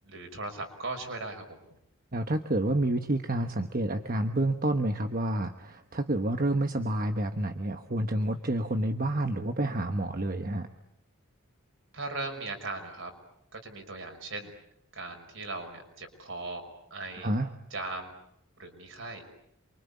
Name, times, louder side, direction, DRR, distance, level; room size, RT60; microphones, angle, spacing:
voice 1, 0.0-1.6 11.9-13.1 13.5-14.5 14.9-17.3 17.7-18.1 18.6-19.3, right 2 dB, 65° right, 4 dB, 5.7 m, -38 dB
voice 2, 2.1-10.7 17.2-17.5, right 1 dB, 45° right, 7 dB, 1.2 m, -29 dB
28.0 x 24.5 x 8.5 m, 0.79 s
head